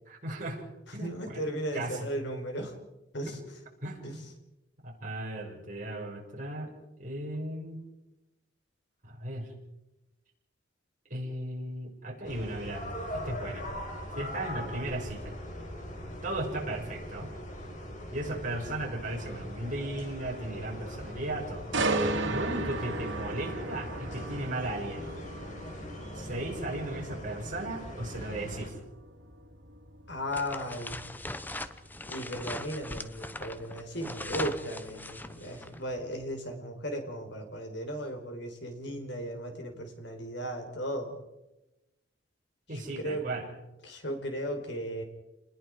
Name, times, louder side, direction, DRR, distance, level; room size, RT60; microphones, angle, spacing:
voice 1, 0.1-0.6 0.9-1.4 1.7-2.1 3.3-3.4 3.8-4.2 4.8-6.7 7.0-7.8 9.0-9.5 11.1-12.9 13.1-13.7 14.2-15.4 16.2-17.3 18.1-21.7 22.3-25.2 26.1-28.8 42.7-43.5, right 1 dB, 45° right, -2 dB, 5.9 m, -36 dB
voice 2, 1.0-2.7 3.1-3.4 4.0-4.2 30.1-31.0 32.1-41.2 42.7-43.3 43.8-45.0, equal, 65° left, 5 dB, 4.5 m, -36 dB
sound 1, 12.2-28.7, left 1 dB, 40° left, 5.1 m, -41 dB
sound 2, 21.7-35.6 36.0-36.2, right 2 dB, 85° right, 2.8 m, -37 dB
sound 3, 30.3-35.8, left 1 dB, 10° left, 0.8 m, -40 dB
29.0 x 20.5 x 4.9 m, 0.96 s
head